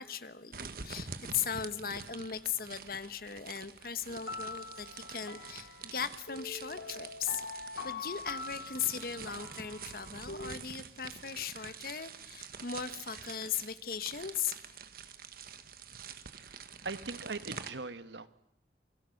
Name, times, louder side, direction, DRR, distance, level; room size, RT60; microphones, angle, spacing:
voice 1, 0.0-14.6, left 7 dB, 55° left, 12 dB, 1.3 m, -38 dB
sound 1, 0.5-17.7, right 6 dB, 55° right, 1.5 m, -47 dB
sound 2, 4.2-10.6, left 4 dB, 90° left, 2.3 m, -44 dB
voice 2, 16.2-18.3, right 3 dB, 80° right, 12 dB, 1.3 m, -41 dB
29.0 x 22.0 x 6.6 m, 0.76 s
head